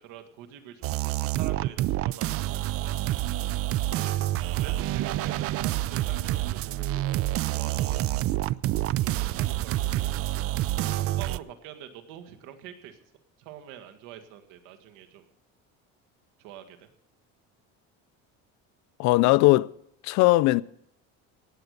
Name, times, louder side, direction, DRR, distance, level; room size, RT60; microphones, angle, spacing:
voice 1, 0.0-3.0 3.9-4.2 4.6-7.1 7.5-8.5 9.0-10.1 10.9-13.0 13.4-15.3 16.4-16.9, right 10 dB, 90° right, 1.9 m, -45 dB
sound 1, 0.8-11.4, right 15 dB, 50° right, 0.5 m, -28 dB
voice 2, 19.0-19.7 20.0-20.6, left 20 dB, 65° left, 0.5 m, -19 dB
18.0 x 8.1 x 6.5 m
cardioid pair, 130°, 30 cm